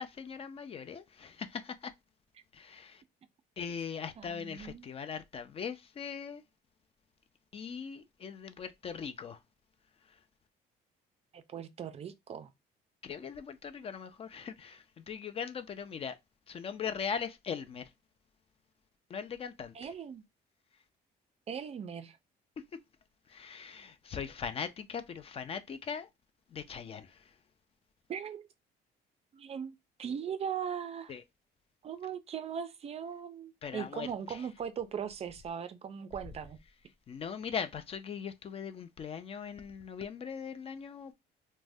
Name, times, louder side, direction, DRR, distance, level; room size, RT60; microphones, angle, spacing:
voice 1, 0.0-1.9 2.5-3.0 3.6-6.4 7.5-9.4 10.1-10.2 13.0-16.2 16.5-17.9 19.1-19.8 23.3-26.1 26.5-27.3 31.1-31.2 33.6-34.4 37.1-41.1, left 6 dB, 35° left, 0.4 m, -40 dB
voice 2, 4.2-4.9 11.3-12.5 19.7-20.2 21.5-22.2 28.1-28.5 29.3-31.2 31.8-36.6, right 8 dB, 40° right, 0.4 m, -39 dB
2.5 x 2.1 x 3.3 m
cardioid pair, 110°, 17 cm